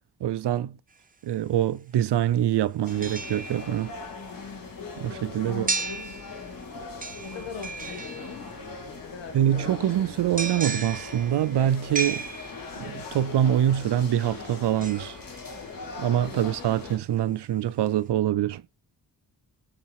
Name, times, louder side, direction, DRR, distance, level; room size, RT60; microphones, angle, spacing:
voice 1, 0.2-0.8 1.2-3.9 5.0-5.7 9.3-12.3 12.8-15.2 16.0-18.6, right 11 dB, 70° right, 0.5 m, -25 dB
sound 1, 0.9-1.0 2.9-4.1 5.7-6.6 7.0-8.7 10.4-12.9 14.8-16.0 16.5-16.6, right 4 dB, 20° right, 0.8 m, -35 dB
sound 2, 2.8-17.0, left 4 dB, 50° left, 2.4 m, -40 dB
voice 2, 5.4-6.3 7.2-8.5 9.0-10.3 16.2-16.5, left 5 dB, 80° left, 1.4 m, -41 dB
11.5 x 4.1 x 4.7 m
wide cardioid pair, 145°, 43 cm